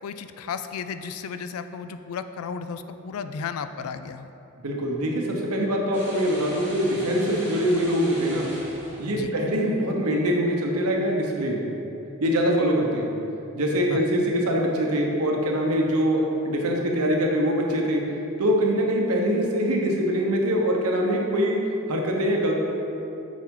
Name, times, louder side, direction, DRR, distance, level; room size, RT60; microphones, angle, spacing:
voice 1, 0.0-4.3 9.1-9.3 13.9-14.0, left 6 dB, 75° left, 11 dB, 0.3 m, -34 dB
voice 2, 4.6-8.5 9.0-11.6 12.2-13.1 13.5-18.0 18.4-21.6 21.9-22.5, equal, 85° right, 0 dB, 1.0 m, -23 dB
sound 1, 5.9-9.5, right 1 dB, 10° right, 1.4 m, -40 dB
7.4 x 4.8 x 3.8 m, 2.9 s
head